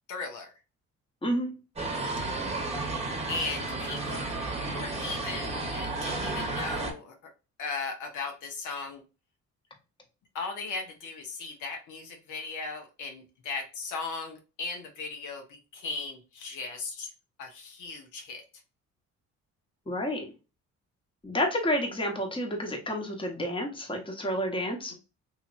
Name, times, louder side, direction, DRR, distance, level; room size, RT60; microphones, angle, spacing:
voice 1, 0.1-0.5 3.3-7.1 7.6-9.0 10.3-17.1 17.4-18.4 24.9-25.0, left 4 dB, 80° left, 3 dB, 0.9 m, -37 dB
sound 1, 1.8-6.9, right 2 dB, 20° right, 1.0 m, -32 dB
voice 2, 19.9-20.2 21.2-24.9, equal, 15° left, 2 dB, 1.0 m, -30 dB
3.0 x 2.8 x 2.5 m, 0.30 s
cardioid pair, 90°, 30 cm